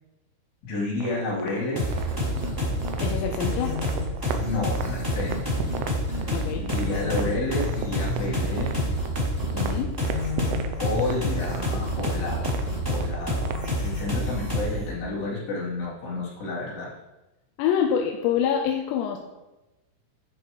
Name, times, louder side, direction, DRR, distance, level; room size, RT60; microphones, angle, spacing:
voice 1, 0.6-2.0 4.4-5.7 6.2-6.3 6.6-8.8 10.8-13.4 13.8-16.9, left 2 dB, 65° left, -7 dB, 5.1 m, -31 dB
sound 1, 1.0-13.8, right 8 dB, 85° right, 3.1 m, -36 dB
sound 2, 1.8-14.9, left 1 dB, 5° right, 2.8 m, -28 dB
voice 2, 3.0-3.8 6.3-6.7 9.5-10.0 17.6-19.2, left 8 dB, 80° left, 2 dB, 2.9 m, -26 dB
10.0 x 10.0 x 3.1 m, 1.0 s
omnidirectional pair, 5.4 m